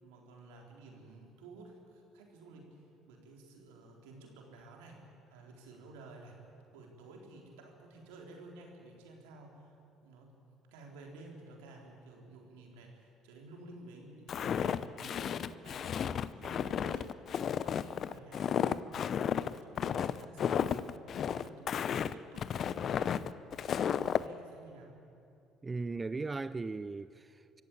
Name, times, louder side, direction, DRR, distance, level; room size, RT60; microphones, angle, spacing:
voice 1, 0.0-2.8 3.1-6.4 6.7-9.8 10.0-10.3 10.7-17.1 17.5-19.2 19.5-23.2 23.5-24.9, right 2 dB, 80° right, 3.9 m, -53 dB
Walk footsteps, 14.3-24.2, left 8 dB, 50° left, 0.7 m, -33 dB
voice 2, 25.6-27.6, right 3 dB, 25° right, 0.5 m, -38 dB
24.5 x 14.5 x 8.6 m
hypercardioid pair, 60°, 0 cm